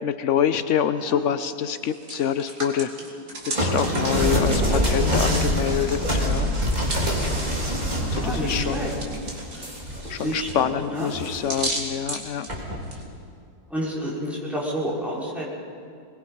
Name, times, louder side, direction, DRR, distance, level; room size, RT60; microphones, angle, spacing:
voice 1, 0.0-2.9 3.5-6.5 8.0-8.9 10.1-12.5, left 9 dB, 90° left, 12 dB, 0.6 m, -26 dB
Hands, 1.8-5.5 5.8-13.0, right 1 dB, 35° right, 3.0 m, -36 dB
sound 1, 3.5-10.5 11.0-11.6 12.5-12.8, equal, 20° right, 3.4 m, -25 dB
voice 2, 8.1-8.9 10.2-11.1 13.7-15.4, equal, ahead, -6 dB, 5.3 m, -30 dB
21.5 x 21.5 x 5.7 m, 2.4 s
omnidirectional pair, 2.1 m